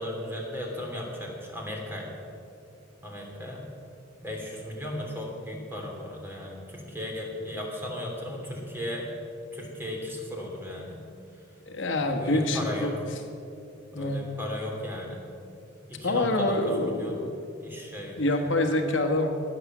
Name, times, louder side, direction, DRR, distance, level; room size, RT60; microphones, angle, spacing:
voice 1, 0.0-2.1 3.0-3.7 4.2-9.1 9.5-11.0 12.0-12.9 13.9-15.2 15.9-17.2 17.6-18.2, left 1 dB, 10° right, -1 dB, 3.0 m, -36 dB
voice 2, 11.7-13.2 13.9-14.2 16.0-17.3 18.2-19.3, left 2 dB, 70° left, 4 dB, 1.5 m, -26 dB
20.0 x 7.7 x 7.3 m, 2.5 s
head